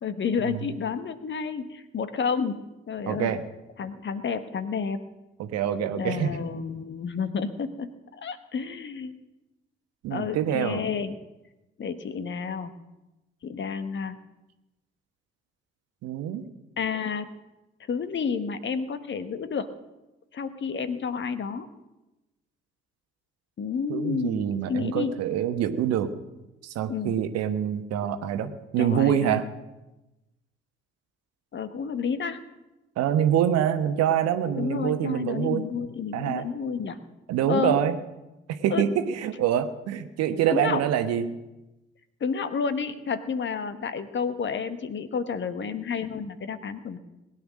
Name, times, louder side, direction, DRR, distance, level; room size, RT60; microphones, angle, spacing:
voice 1, 0.0-3.3 3.8-5.0 5.9-9.2 10.1-11.2 11.8-12.7 13.4-14.2 16.8-17.3 17.9-19.7 20.3-21.7 23.6-25.2 26.9-27.2 28.8-29.4 31.5-32.4 34.6-37.0 37.5-37.8 38.7-38.8 40.5-40.8 42.2-47.0, left 6 dB, 40° left, 12 dB, 1.3 m, -30 dB
voice 2, 3.1-3.4 5.4-6.4 10.0-10.8 16.0-16.4 23.9-26.1 26.6-29.4 33.0-35.6 36.1-36.5 37.3-38.0 38.5-41.2, right 9 dB, 55° right, 9 dB, 1.3 m, -25 dB
20.0 x 9.6 x 6.4 m, 1.0 s
figure-of-eight pair, 45°, 30 cm